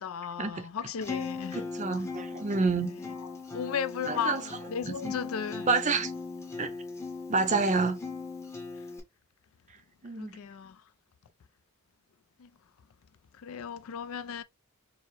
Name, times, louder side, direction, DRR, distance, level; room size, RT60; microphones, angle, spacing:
voice 1, 0.0-1.6 3.5-5.7 10.2-10.8 12.4-12.5 13.4-14.4, left 7 dB, 70° left, 0.4 m, -35 dB
Acoustic guitar, 1.0-9.0, left 4 dB, 15° left, 0.8 m, -39 dB
voice 2, 1.5-2.9 4.1-4.4 4.8-5.2 5.7-6.1 6.6-6.7 7.3-8.0 10.0-10.4, right 4 dB, 35° right, 0.6 m, -28 dB
4.6 x 2.0 x 3.0 m
head